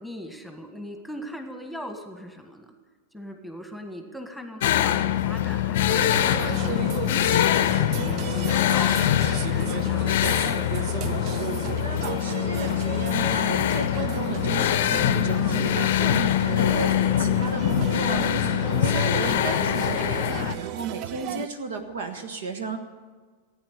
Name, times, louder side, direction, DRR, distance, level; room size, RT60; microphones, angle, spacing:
voice 1, 0.0-2.7 3.1-6.8 7.5-10.3, equal, ahead, 5 dB, 1.7 m, -39 dB
sound 1, 4.6-20.5, left 11 dB, 55° left, 0.7 m, -24 dB
sound 2, 5.9-21.5, right 12 dB, 40° right, 0.5 m, -34 dB
voice 2, 11.5-22.8, right 4 dB, 60° right, 6 dB, 1.4 m, -34 dB
15.5 x 9.2 x 8.7 m, 1.4 s
figure-of-eight pair, 90°, 0 cm